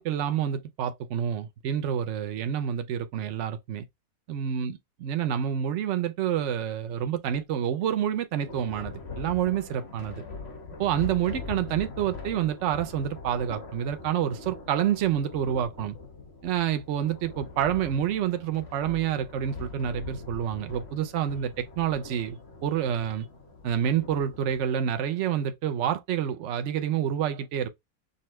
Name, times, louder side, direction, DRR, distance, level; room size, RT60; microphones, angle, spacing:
voice 1, 0.0-3.9 4.3-10.2 10.8-16.0 16.4-23.3 23.6-27.7, right 9 dB, 75° right, 0.6 m, -28 dB
Thunder, 8.4-24.7, left 4 dB, 40° left, 1.1 m, -42 dB
5.4 x 2.1 x 3.0 m
omnidirectional pair, 1.9 m